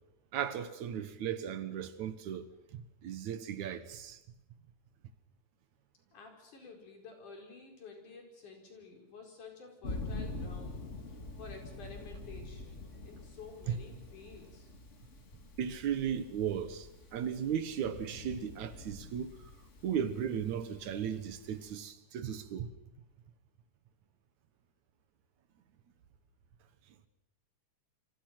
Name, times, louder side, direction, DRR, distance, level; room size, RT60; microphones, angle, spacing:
voice 1, 0.3-4.2 13.7-13.8 15.6-19.5 19.8-22.7, right 8 dB, 70° right, 2.6 m, -36 dB
voice 2, 6.1-14.7, left 4 dB, 75° left, 6.3 m, -51 dB
Thunder, 9.8-21.7, left 2 dB, 30° left, 1.8 m, -46 dB
27.5 x 25.5 x 6.0 m
omnidirectional pair, 3.6 m